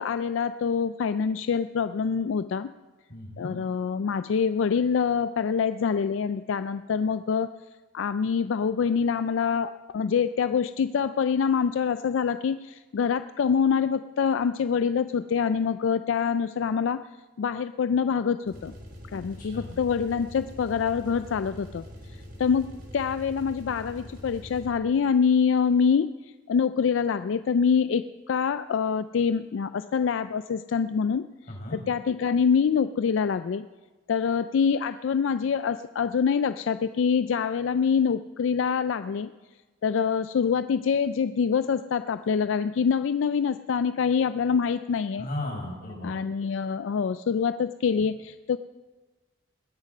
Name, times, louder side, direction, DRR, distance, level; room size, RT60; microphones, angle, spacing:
voice 1, 0.0-2.7 3.4-7.5 7.9-17.0 17.4-18.7 19.1-21.8 22.4-26.1 26.5-31.3 31.9-33.6 34.1-39.3 39.8-45.3 46.0-48.6, left 6 dB, 80° left, 12 dB, 0.4 m, -25 dB
voice 2, 3.1-3.6 19.4-19.8 31.5-31.8 45.2-46.2, left 1 dB, 50° left, -2 dB, 6.3 m, -35 dB
sound 1, 18.4-25.0, equal, 55° right, 4.5 m, -44 dB
20.0 x 8.9 x 5.5 m, 1.2 s
head